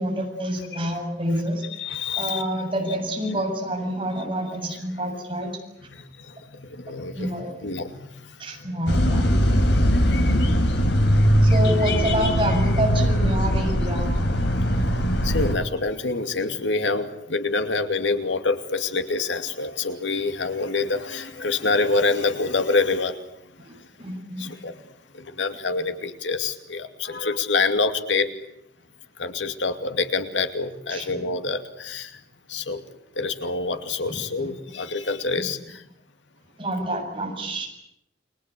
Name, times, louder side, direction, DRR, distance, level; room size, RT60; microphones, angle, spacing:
voice 1, 0.0-1.6 2.2-5.5 7.1-7.7 8.4-9.9 10.3-10.6 11.4-14.1 23.6-23.7 24.0-24.5 30.9-31.1 34.1-34.5 36.6-37.7, equal, 30° right, 2 dB, 7.4 m, -28 dB
voice 2, 1.8-2.4 6.6-7.3 7.6-7.9 15.2-23.2 24.4-24.7 25.4-28.3 29.2-32.1 32.5-32.8 33.2-35.6, left 3 dB, 90° left, 7 dB, 2.6 m, -26 dB
sound 1, 8.9-15.5, equal, 75° left, 4.0 m, -20 dB
30.0 x 22.5 x 8.5 m, 0.77 s
head